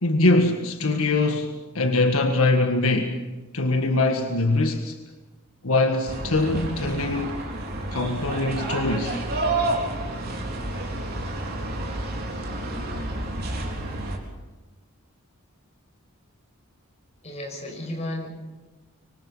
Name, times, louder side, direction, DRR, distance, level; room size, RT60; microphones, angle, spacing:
voice 1, 0.0-3.2 3.5-5.0 5.6-7.4 7.9-9.2, left 2 dB, 75° left, 1.7 m, -22 dB
sound 1, 6.1-14.2, right 2 dB, 45° right, 4.0 m, -30 dB
voice 2, 17.2-18.3, left 1 dB, 30° left, 6.2 m, -33 dB
25.0 x 25.0 x 5.7 m
head